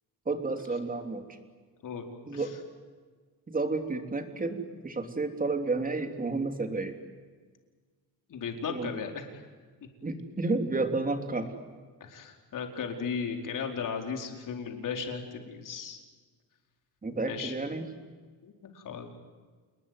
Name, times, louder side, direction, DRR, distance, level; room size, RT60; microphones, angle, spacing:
voice 1, 0.2-1.4 2.3-2.5 3.5-6.9 8.7-8.9 10.0-11.5 17.0-17.9, right 3 dB, 20° right, 6 dB, 3.3 m, -31 dB
voice 2, 8.3-9.4 12.0-16.0 17.2-17.5 18.4-19.1, left 6 dB, 55° left, 3 dB, 4.8 m, -36 dB
28.5 x 21.0 x 9.7 m, 1.5 s
cardioid pair, 130°, 38 cm